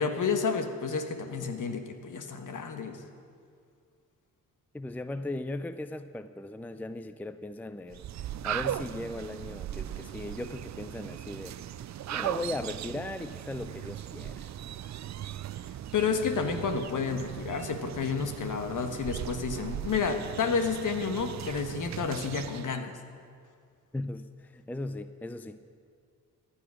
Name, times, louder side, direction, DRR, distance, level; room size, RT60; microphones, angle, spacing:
voice 1, 0.0-3.0 15.9-22.9, left 5 dB, 60° left, 7 dB, 1.4 m, -30 dB
voice 2, 4.7-8.1 8.4-11.8 12.1-14.5 23.9-25.6, left 2 dB, 5° left, 11 dB, 0.5 m, -38 dB
sound 1, 7.9-22.8, right 11 dB, 50° right, 0.5 m, -38 dB
14.5 x 10.0 x 6.3 m, 2.2 s
cardioid pair, 65°, 35 cm